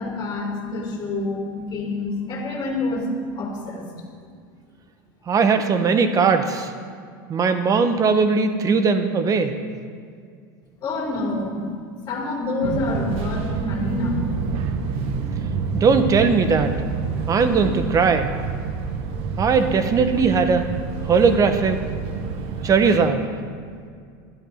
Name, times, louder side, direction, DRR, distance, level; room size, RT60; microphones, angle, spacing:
voice 1, 0.0-3.9 10.8-11.7 12.1-14.3, left 2 dB, 35° left, -2 dB, 3.2 m, -27 dB
voice 2, 5.3-6.7 7.3-9.5 15.7-16.7 17.3-18.3 19.4-20.7 21.0-21.8 22.6-23.3, right 5 dB, 30° right, 8 dB, 1.2 m, -19 dB
Fixed-wing aircraft airplane, 12.6-22.9, right 5 dB, 55° right, 1.3 m, -28 dB
11.5 x 11.5 x 5.9 m, 2.1 s
supercardioid pair, 115°, 11 cm